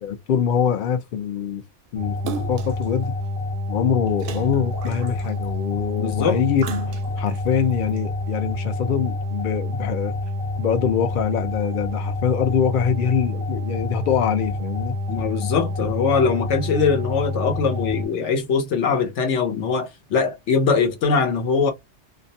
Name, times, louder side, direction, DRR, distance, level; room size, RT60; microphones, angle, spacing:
voice 1, 0.0-1.6 1.9-3.1 3.7-6.6 7.2-10.2 10.6-14.9, left 7 dB, 55° left, 0.7 m, -24 dB
sound 1, 2.0-18.1, left 2 dB, 10° left, 0.5 m, -28 dB
Splash splatter, 2.3-2.9 4.2-5.4 6.6-7.4 8.0-8.1, right 4 dB, 60° right, 0.6 m, -34 dB
voice 2, 6.0-6.4 15.1-21.7, left 5 dB, 80° left, 1.1 m, -22 dB
2.5 x 2.1 x 2.6 m
omnidirectional pair, 1.2 m